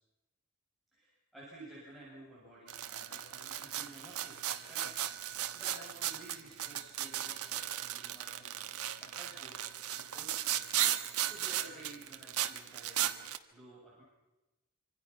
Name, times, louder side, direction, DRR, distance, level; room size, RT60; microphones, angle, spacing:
voice 1, 0.9-10.8 11.2-13.1 13.5-14.0, right 1 dB, ahead, -8 dB, 7.9 m, -54 dB
sound 1, 2.7-13.4, right 12 dB, 75° right, 1.3 m, -36 dB
26.5 x 26.0 x 5.8 m, 1.1 s
head